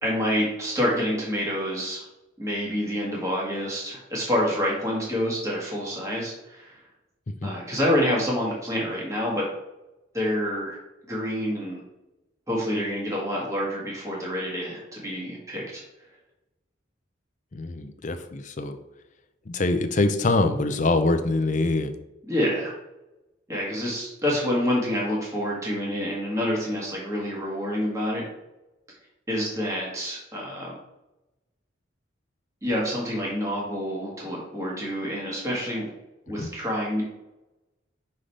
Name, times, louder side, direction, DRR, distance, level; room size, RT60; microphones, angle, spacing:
voice 1, 0.0-2.1 2.4-6.8 7.4-9.5 10.1-10.8 11.1-11.8 12.5-15.8 22.3-22.7 23.5-28.3 29.3-30.7 32.6-35.9 36.3-37.0, equal, 15° right, -4 dB, 1.5 m, -27 dB
voice 2, 17.5-18.8 19.5-21.9 36.4-36.5, left 2 dB, 40° left, 8 dB, 0.5 m, -24 dB
5.7 x 5.1 x 3.3 m, 0.95 s
head